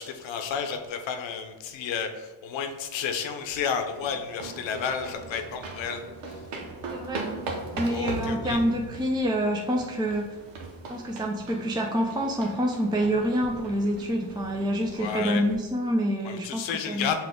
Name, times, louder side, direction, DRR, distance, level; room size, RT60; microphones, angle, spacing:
voice 1, 0.0-6.0 6.3-6.4 7.8-8.6 14.9-15.4 16.2-17.1, left 7 dB, 70° left, 6 dB, 0.8 m, -31 dB
sound 1, 3.8-15.6, right 3 dB, 85° right, 0.8 m, -39 dB
voice 2, 6.9-7.3 7.7-10.4 10.9-17.1, equal, 10° right, 1 dB, 0.5 m, -27 dB
5.6 x 2.4 x 3.6 m, 1.2 s
supercardioid pair, 55°, 47 cm